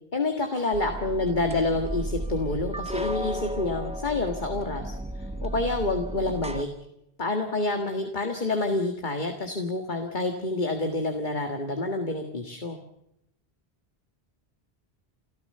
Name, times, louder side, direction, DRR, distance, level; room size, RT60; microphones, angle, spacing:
voice 1, 0.1-5.0 5.4-6.7 7.2-12.8, left 2 dB, 50° left, 4 dB, 2.0 m, -28 dB
sound 1, 0.7-6.6, right 1 dB, 5° right, 1.2 m, -34 dB
30.0 x 14.0 x 6.8 m, 0.79 s
omnidirectional pair, 1.0 m